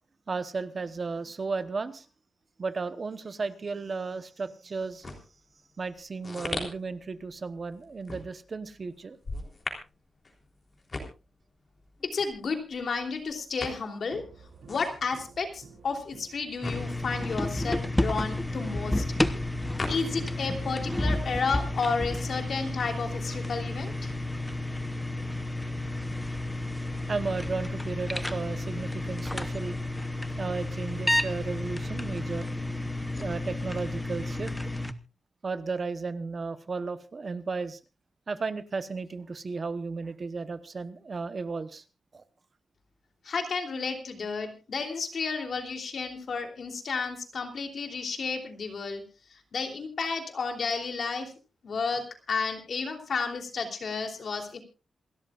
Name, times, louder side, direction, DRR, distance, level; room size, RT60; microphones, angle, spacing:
voice 1, 0.3-2.1 2.6-5.1 5.8-9.2 27.1-29.8 30.4-32.5 33.2-34.5 35.4-37.8 38.3-41.8 42.1-42.2, right 4 dB, 35° right, 11 dB, 0.9 m, -34 dB
sound 1, 4.8-20.5 20.8-22.4, left 2 dB, 30° left, 3.5 m, -41 dB
voice 2, 12.1-14.2 14.7-19.0 19.9-24.1 43.2-49.0 49.3-51.3 51.6-54.6, left 4 dB, 55° left, 4 dB, 3.1 m, -32 dB
sound 2, 14.1-21.0, right 5 dB, 75° right, 3.1 m, -52 dB
sound 3, 16.6-34.9, left 1 dB, 10° left, 0.8 m, -31 dB
27.5 x 13.0 x 2.4 m, 0.32 s
wide cardioid pair, 180°, 0 cm